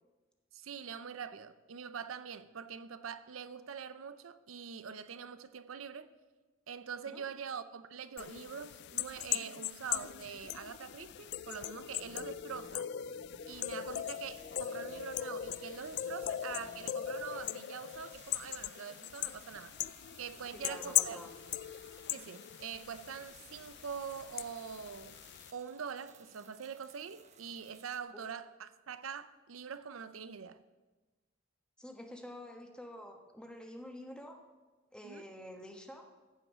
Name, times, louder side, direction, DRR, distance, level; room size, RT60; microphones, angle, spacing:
voice 1, 0.5-6.1 6.7-12.9 13.5-19.7 20.2-21.2 22.1-25.2 25.5-30.6 35.0-35.3, right 7 dB, 90° right, 0.6 m, -44 dB
sound 1, 8.2-25.5, left 12 dB, 55° left, 0.3 m, -39 dB
sound 2, 11.9-17.5, left 2 dB, 30° left, 1.8 m, -55 dB
sound 3, 13.9-28.0, right 6 dB, 35° right, 1.0 m, -60 dB
voice 2, 20.5-21.3 28.1-28.2 31.8-34.4 34.9-36.1, equal, 5° left, 1.2 m, -48 dB
14.5 x 5.5 x 7.4 m
head